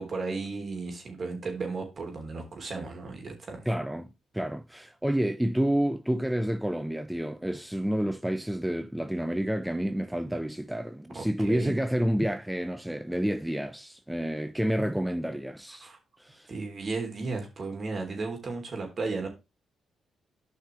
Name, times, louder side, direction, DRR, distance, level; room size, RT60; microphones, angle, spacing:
voice 1, 0.0-3.6 11.1-11.7 15.8-16.0 16.5-19.3, right 3 dB, 50° right, 3.4 m, -34 dB
voice 2, 3.7-4.1 4.3-15.9 16.2-16.5, equal, 5° right, 0.7 m, -29 dB
10.5 x 5.7 x 3.3 m
supercardioid pair, 55°, 0 cm